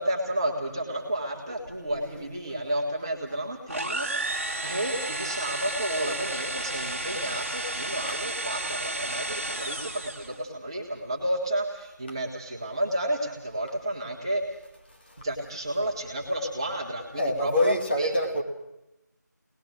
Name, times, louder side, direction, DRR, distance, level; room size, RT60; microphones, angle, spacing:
voice 1, 0.0-4.3 4.6-14.4 15.2-18.1, right 1 dB, 15° right, -2 dB, 1.7 m, -31 dB
sound 1, 3.7-10.4, right 2 dB, 40° right, 1.5 m, -32 dB
voice 2, 17.2-18.4, left 1 dB, 35° left, 1 dB, 1.9 m, -25 dB
25.5 x 19.5 x 6.2 m, 0.91 s
figure-of-eight pair, 170°, 10 cm